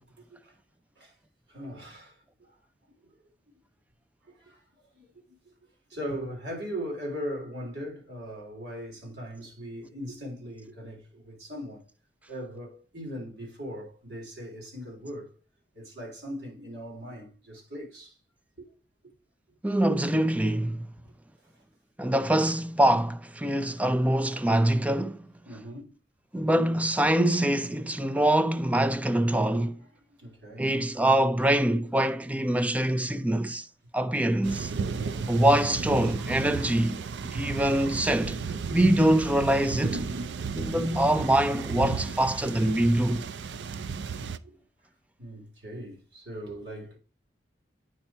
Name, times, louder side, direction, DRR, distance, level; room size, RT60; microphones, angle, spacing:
voice 1, 0.2-0.5 1.0-1.1 1.5-2.6 4.2-4.6 4.9-5.6 5.9-11.9 12.3-15.3 15.7-18.2 18.6-18.7 19.0-19.1 25.5-26.0 30.2-30.9 35.1-35.6 36.8-37.1 38.6-38.8 40.6-41.0 42.7-42.8 43.6-44.6 45.2-47.0, equal, 70° right, 3.5 m, -40 dB
voice 2, 19.6-20.9 22.0-25.3 26.3-29.8 30.6-33.7 33.9-34.7 35.3-37.0 37.3-38.4 38.7-40.0 40.5-43.2, right 1 dB, 10° right, 0.4 m, -24 dB
sound 1, 34.4-44.4, right 5 dB, 85° right, 0.5 m, -34 dB
8.8 x 4.3 x 4.4 m
head